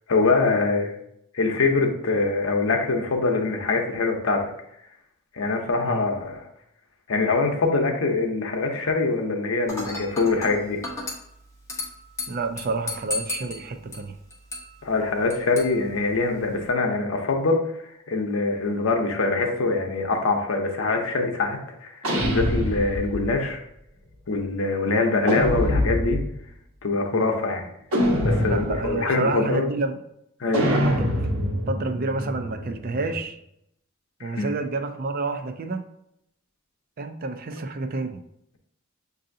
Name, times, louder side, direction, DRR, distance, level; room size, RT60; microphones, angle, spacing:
voice 1, 0.1-0.9 1.3-4.5 5.3-6.5 7.1-10.8 14.8-17.6 18.1-22.0 22.2-23.6 24.3-26.2 26.8-27.7 28.2-29.7 30.4-30.7 34.2-34.5, left 3 dB, 65° left, 0.7 m, -24 dB
Dishes pots and pans / Glass, 9.7-16.7, left 2 dB, 15° left, 0.8 m, -36 dB
voice 2, 12.3-14.2 24.9-25.1 27.1-27.4 28.5-30.0 30.7-31.3 31.7-33.4 34.2-35.9 37.0-38.2, right 3 dB, 40° right, 0.4 m, -29 dB
sound 1, 22.0-23.3 25.3-26.4 27.9-29.0 30.5-33.2, equal, 85° right, 1.1 m, -25 dB
6.5 x 2.7 x 2.6 m
head